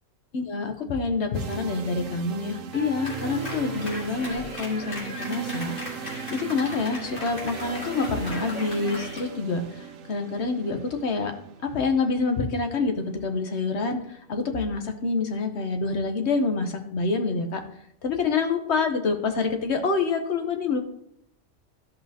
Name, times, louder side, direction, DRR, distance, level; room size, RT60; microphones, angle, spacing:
voice 1, 0.3-11.3 11.6-17.6 18.0-20.8, left 4 dB, 60° left, 5 dB, 1.2 m, -27 dB
sound 1, 1.3-15.2, right 7 dB, 85° right, 1.1 m, -39 dB
Clapping, 2.7-9.3, equal, 45° left, 2.4 m, -38 dB
13.0 x 5.4 x 2.8 m, 0.74 s
omnidirectional pair, 1.3 m